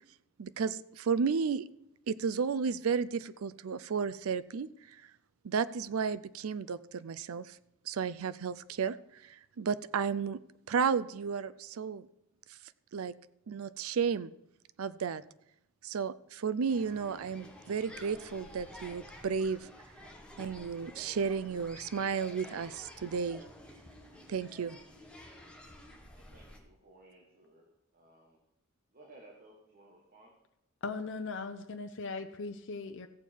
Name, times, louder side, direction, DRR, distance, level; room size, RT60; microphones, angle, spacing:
voice 1, 0.4-1.7 2.1-4.7 5.4-7.6 7.9-9.0 9.2-10.4 10.7-12.1 12.9-13.1 13.5-14.3 14.8-15.2 15.8-19.7 20.4-23.4 24.3-24.8, right 6 dB, 75° right, 16 dB, 0.5 m, -33 dB
sound 1, 16.7-26.6, left 1 dB, 5° left, 1.4 m, -51 dB
voice 2, 26.1-28.4 28.9-30.3, right 2 dB, 40° right, 0 dB, 1.6 m, -58 dB
voice 3, 30.8-33.1, left 4 dB, 60° left, 6 dB, 0.7 m, -39 dB
16.0 x 7.1 x 4.6 m, 0.82 s
head